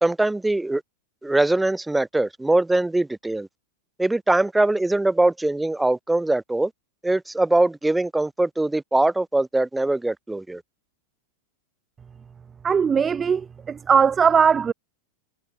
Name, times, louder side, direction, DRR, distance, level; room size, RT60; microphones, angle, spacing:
voice 1, 0.0-0.8 1.2-3.5 4.0-6.7 7.0-10.6, right 2 dB, 5° right, 1.1 m, -22 dB
voice 2, 12.6-14.7, right 6 dB, 20° right, 0.7 m, -19 dB
hypercardioid pair, 110°, 0 cm